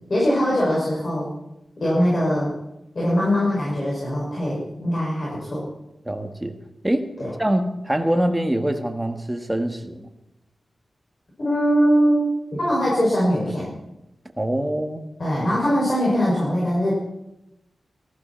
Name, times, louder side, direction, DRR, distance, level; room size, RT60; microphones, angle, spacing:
voice 1, 0.1-1.3 1.8-2.5 2.9-5.6 7.2-7.3 11.4-13.7 15.2-16.9, equal, 45° left, -6 dB, 6.5 m, -21 dB
voice 2, 6.0-6.5 6.8-7.0 7.4-10.1 14.4-15.0, right 1 dB, 10° right, 5 dB, 1.6 m, -24 dB
18.0 x 14.5 x 4.5 m, 0.89 s
wide cardioid pair, 80°, 0 cm